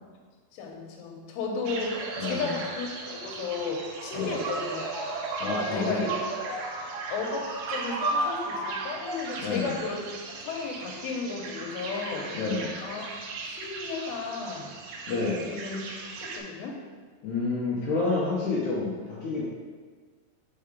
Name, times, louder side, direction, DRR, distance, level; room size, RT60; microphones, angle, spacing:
voice 1, 0.5-5.1 5.5-6.1 7.1-10.1 10.4-12.3 12.8-13.1 13.4-14.7 15.5-15.8 16.2-16.8, left 4 dB, 90° left, 1 dB, 3.1 m, -34 dB
sound 1, 1.6-16.4, right 3 dB, 80° right, 2.0 m, -35 dB
voice 2, 2.2-2.6 4.1-4.4 5.4-6.1 9.4-9.8 12.3-12.8 15.1-15.5 17.2-19.4, left 3 dB, 70° left, -6 dB, 1.8 m, -29 dB
5.5 x 5.3 x 5.1 m, 1.5 s
omnidirectional pair, 4.8 m